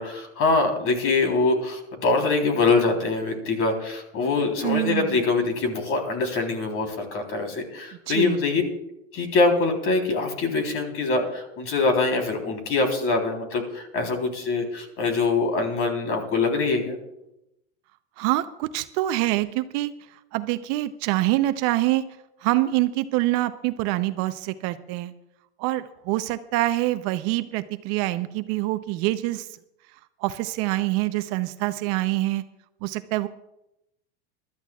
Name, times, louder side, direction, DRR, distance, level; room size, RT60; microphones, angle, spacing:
voice 1, 0.0-8.6 9.1-16.9, left 3 dB, 40° left, 4 dB, 3.6 m, -24 dB
voice 2, 4.6-5.2 8.1-8.4 18.2-19.9 20.3-22.0 22.4-25.1 25.6-29.5 30.2-32.4 32.8-33.3, right 17 dB, 50° right, 11 dB, 0.7 m, -25 dB
23.5 x 13.0 x 2.4 m, 0.87 s
hypercardioid pair, 115°, 33 cm